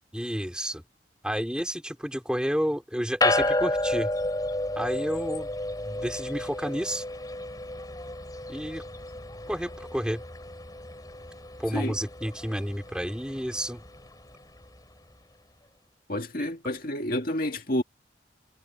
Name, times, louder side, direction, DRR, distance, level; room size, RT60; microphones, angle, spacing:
voice 1, 0.1-0.8 1.2-4.1 4.8-5.5 5.8-7.0 8.5-8.8 9.5-10.2 11.6-13.8 16.4-16.5, equal, 5° right, 4.1 m, -30 dB
sound 1, 3.2-14.8, left 2 dB, 20° left, 3.8 m, -32 dB
voice 2, 16.1-17.8, left 1 dB, 50° left, 2.1 m, -29 dB
head